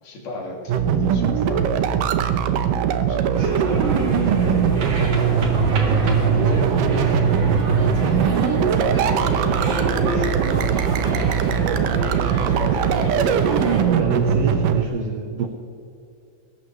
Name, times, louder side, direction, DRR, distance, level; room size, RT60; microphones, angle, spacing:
voice 1, 0.0-2.7 3.1-5.1 5.8-11.0 11.9-13.5, left 1 dB, 75° left, -1 dB, 4.0 m, -35 dB
sound 1, 0.7-14.8, right 7 dB, 90° right, 2.5 m, -21 dB
voice 2, 2.5-3.0 5.8-6.1 11.5-12.6 13.8-15.5, right 6 dB, 70° right, 5 dB, 1.6 m, -29 dB
sound 2, 3.3-13.8, right 2 dB, 40° right, 2.3 m, -26 dB
20.5 x 17.0 x 3.3 m, 2.7 s
omnidirectional pair, 3.8 m